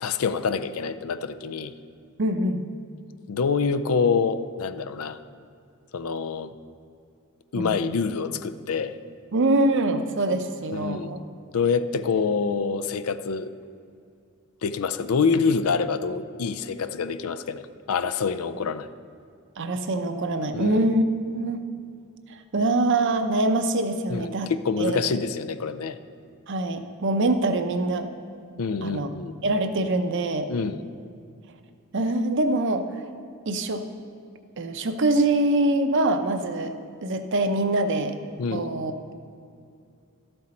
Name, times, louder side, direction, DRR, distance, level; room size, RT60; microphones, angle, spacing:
voice 1, 0.0-1.7 3.3-5.2 5.9-6.5 7.5-8.9 10.7-11.2 11.5-13.5 14.6-18.9 20.5-20.9 24.1-26.0 28.6-29.3 30.5-30.8 38.4-38.7, left 5 dB, 75° left, 12 dB, 0.5 m, -26 dB
voice 2, 2.2-2.6 7.6-8.0 9.3-11.2 19.6-21.6 22.3-24.5 24.8-25.0 26.5-28.1 28.8-29.1 29.4-30.5 31.9-32.8 33.5-33.8 34.6-36.7 37.0-38.2 38.5-39.1, right 2 dB, 55° right, 8 dB, 0.7 m, -24 dB
12.5 x 7.8 x 4.3 m, 2.4 s
head